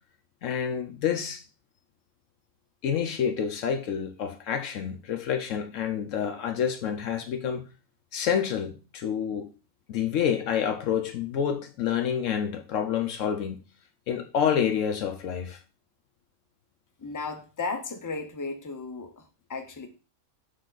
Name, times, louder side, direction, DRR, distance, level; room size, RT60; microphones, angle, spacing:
voice 1, 0.4-1.4 2.8-7.6 8.1-9.5 9.9-13.6 14.1-15.6, left 8 dB, 75° left, 1.0 m, -28 dB
voice 2, 17.0-19.2 19.5-19.9, left 4 dB, 20° left, 0.5 m, -34 dB
6.5 x 3.7 x 3.9 m
omnidirectional pair, 1.4 m